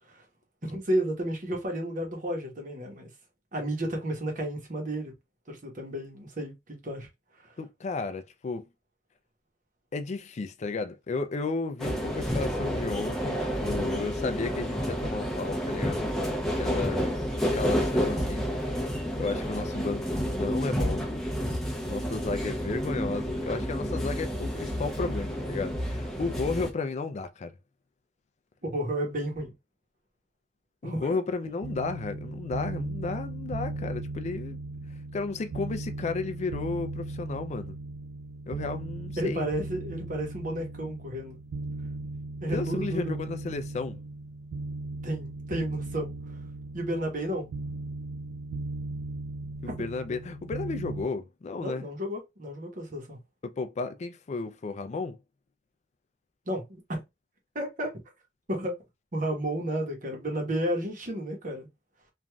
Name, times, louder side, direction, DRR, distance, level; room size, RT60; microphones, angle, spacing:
voice 1, 0.6-3.1 3.5-5.1 5.5-7.1 7.4-7.6 28.6-29.5 30.8-31.2 31.4-31.5 39.2-41.4 42.4-43.2 45.0-46.4 46.7-47.5 49.6-49.7 51.6-53.2 56.5-57.0 57.5-57.9 58.5-58.8 59.1-61.7, right 1 dB, 45° right, 1.0 m, -32 dB
voice 2, 7.6-8.7 9.9-16.0 16.6-17.2 17.5-18.8 19.2-21.1 21.8-27.5 30.8-34.6 35.1-37.8 38.5-39.5 42.5-44.0 49.6-51.9 53.4-55.2, left 4 dB, 40° left, 0.4 m, -33 dB
sound 1, 11.8-26.7, equal, 5° left, 0.6 m, -30 dB
sound 2, 31.6-51.0, right 2 dB, 75° right, 0.4 m, -37 dB
3.1 x 2.5 x 2.3 m
head